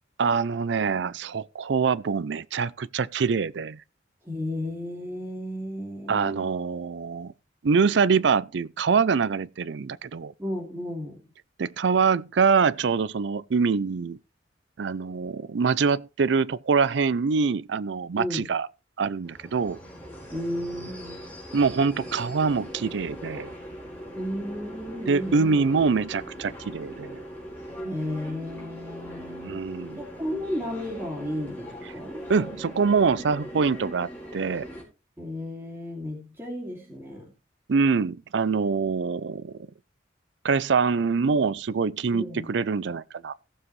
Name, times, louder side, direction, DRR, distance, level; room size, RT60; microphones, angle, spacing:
voice 1, 0.2-3.8 6.1-7.3 7.6-10.3 11.6-14.2 14.8-18.7 19.0-19.8 21.5-23.5 25.1-27.3 29.4-30.0 32.3-34.7 37.7-39.5 40.4-43.3, right 5 dB, 70° right, 0.4 m, -24 dB
voice 2, 4.2-6.5 10.4-11.2 18.2-18.5 20.3-21.3 24.1-26.1 27.8-32.2 35.2-37.3 42.1-42.5, left 1 dB, 15° right, 2.6 m, -34 dB
sound 1, 19.2-34.8, equal, 10° left, 4.7 m, -41 dB
17.5 x 7.3 x 3.2 m
head